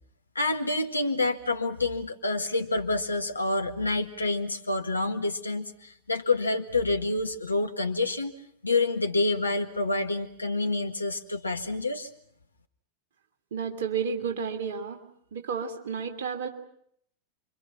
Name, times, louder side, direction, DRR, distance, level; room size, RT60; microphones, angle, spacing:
voice 1, 0.4-8.3 8.6-12.1, left 2 dB, 80° left, 7 dB, 1.8 m, -28 dB
voice 2, 13.5-15.0 15.3-16.5, right 6 dB, 60° right, 5 dB, 2.9 m, -31 dB
29.0 x 24.5 x 5.9 m, 0.70 s
figure-of-eight pair, 90°, 0 cm